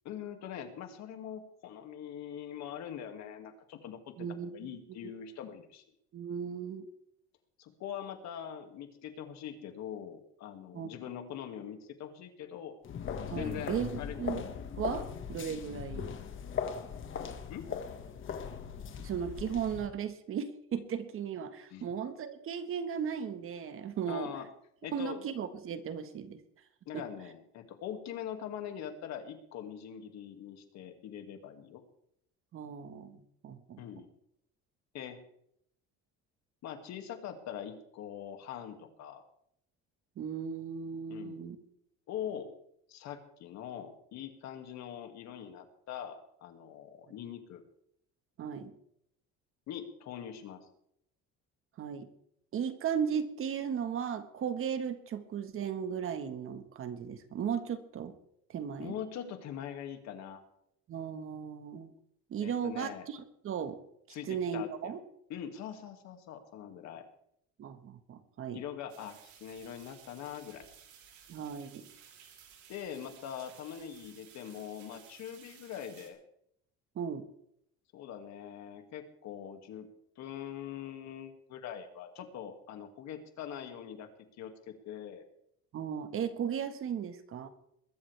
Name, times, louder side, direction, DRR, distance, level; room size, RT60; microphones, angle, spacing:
voice 1, 0.0-5.8 7.6-12.7 13.4-14.2 17.5-17.7 21.7-21.9 24.1-24.5 24.8-25.3 26.9-31.8 33.8-34.1 34.9-35.2 36.6-39.2 41.1-41.5 42.1-42.5 42.9-47.6 49.7-50.7 58.8-60.4 62.4-63.1 64.1-64.9 65.3-67.0 68.5-70.7 72.7-76.2 77.9-79.9 80.2-84.1 84.4-85.2, left 9 dB, 65° left, 6 dB, 2.3 m, -43 dB
voice 2, 4.2-5.1 6.1-6.9 10.7-10.9 13.3-14.4 14.8-16.1 19.0-24.3 24.9-26.4 26.9-27.0 32.5-33.8 40.2-41.6 48.4-48.7 51.8-52.1 52.5-58.1 58.5-58.9 60.9-61.9 62.3-63.8 64.3-65.0 67.6-68.6 71.3-71.9 76.9-77.2 85.7-87.5, right 7 dB, 45° right, 10 dB, 1.5 m, -36 dB
sound 1, 12.8-19.9, left 7 dB, 40° left, 1.7 m, -39 dB
sound 2, 68.9-76.1, right 8 dB, 70° right, 3.4 m, -57 dB
21.0 x 13.0 x 3.4 m, 0.72 s
cardioid pair, 130°, 30 cm